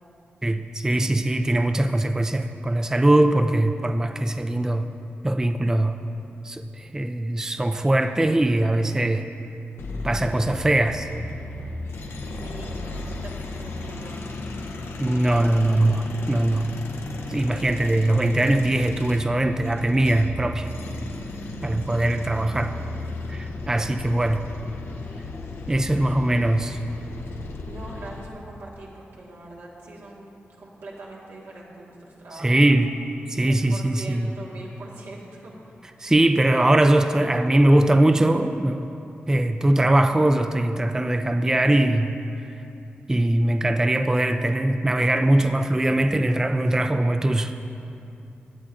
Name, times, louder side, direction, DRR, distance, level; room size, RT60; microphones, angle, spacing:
voice 1, 0.4-4.9 5.2-6.0 6.4-9.3 10.0-11.1 15.0-16.7 17.3-20.7 21.6-22.8 23.3-24.4 25.7-26.8 32.4-32.9 33.3-34.3 36.0-38.9 39.3-42.2 43.1-47.5, right 1 dB, 15° right, 7 dB, 0.3 m, -21 dB
sound 1, 9.8-28.3, left 2 dB, 85° left, 0.7 m, -35 dB
voice 2, 12.3-14.3 21.2-21.7 27.6-30.3 30.6-32.5 33.3-35.5 36.0-36.2, right 2 dB, 90° right, -5 dB, 1.6 m, -42 dB
15.0 x 8.2 x 2.5 m, 2.8 s
wide cardioid pair, 80°, 4 cm